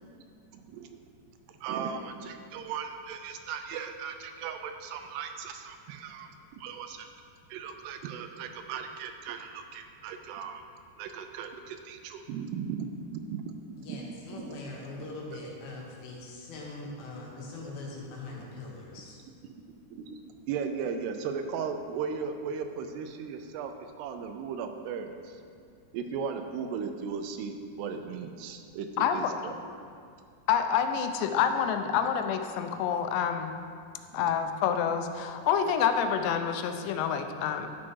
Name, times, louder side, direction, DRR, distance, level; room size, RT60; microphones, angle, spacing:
voice 1, 0.5-1.0 1.5-7.1 7.5-10.6 11.0-12.9 13.3-13.5 13.9-14.0 14.4-14.5 19.9-23.7 24.0-25.4 25.9-29.5 34.1-34.3, right 6 dB, 80° right, 7 dB, 2.6 m, -37 dB
voice 2, 13.8-19.2, left 2 dB, 70° left, -3 dB, 3.1 m, -42 dB
voice 3, 30.5-33.5 34.1-37.7, left 8 dB, 85° left, 7 dB, 2.8 m, -27 dB
12.0 x 6.3 x 4.6 m, 2.3 s
omnidirectional pair, 4.9 m